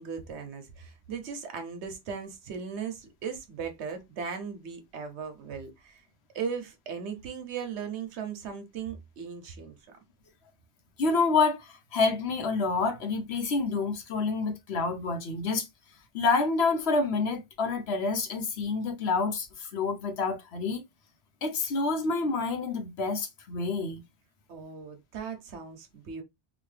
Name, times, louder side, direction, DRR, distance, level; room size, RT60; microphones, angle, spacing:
voice 1, 0.0-6.0 6.3-9.7 24.5-26.2, right 6 dB, 80° right, 1.1 m, -37 dB
voice 2, 11.0-15.7 16.1-20.8 21.4-24.0, left 4 dB, 70° left, 1.0 m, -28 dB
3.0 x 2.4 x 3.2 m
omnidirectional pair, 1.1 m